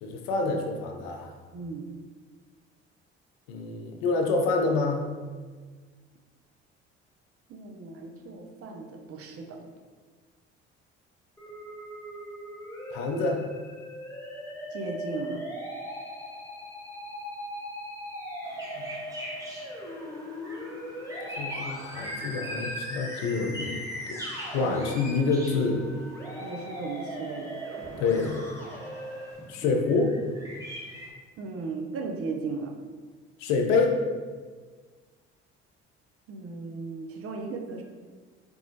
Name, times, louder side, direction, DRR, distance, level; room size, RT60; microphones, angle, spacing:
voice 1, 0.0-1.3 3.5-5.1 12.9-13.4 18.8-18.9 21.4-23.8 24.1-24.2 24.5-25.8 28.0-28.6 29.5-30.1 33.4-34.0, left 3 dB, 65° left, 3 dB, 0.7 m, -27 dB
voice 2, 1.5-1.9 7.5-9.6 14.7-15.5 24.6-24.8 26.4-27.6 31.4-32.7 36.3-37.8, right 4 dB, 45° right, 2 dB, 0.6 m, -36 dB
Musical instrument, 11.4-29.3, equal, 10° left, 1.2 m, -39 dB
sound 1, 18.4-31.1, equal, 10° right, 1.2 m, -43 dB
4.2 x 3.4 x 2.7 m, 1.5 s
figure-of-eight pair, 50°, 34 cm